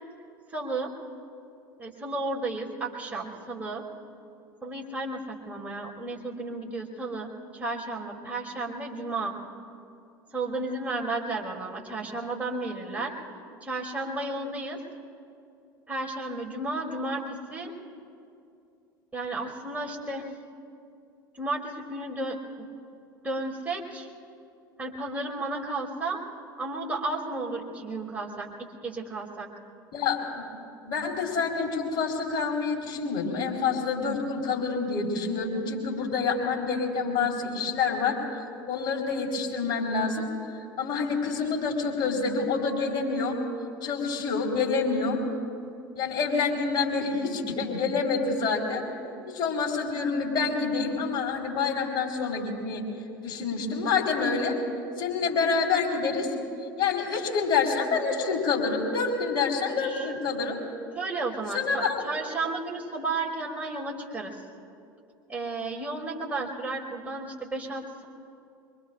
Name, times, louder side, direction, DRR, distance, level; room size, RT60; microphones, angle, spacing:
voice 1, 0.5-0.9 1.8-3.9 4.6-9.3 10.3-13.1 13.6-14.8 15.9-17.7 19.1-20.3 21.3-22.7 23.2-24.1 24.8-26.2 26.6-28.5 28.8-29.5 59.7-60.1 60.9-64.4 65.3-68.0, right 2 dB, 10° right, -2 dB, 2.8 m, -33 dB
voice 2, 29.9-30.4 30.8-38.2 38.7-40.3 40.6-43.4 43.8-45.2 46.0-48.8 49.3-52.9 53.2-54.6 55.0-56.3 56.8-60.6 61.5-62.0, left 4 dB, 45° left, -1 dB, 4.0 m, -27 dB
24.5 x 23.5 x 2.5 m, 2.5 s
hypercardioid pair, 75°, 11 cm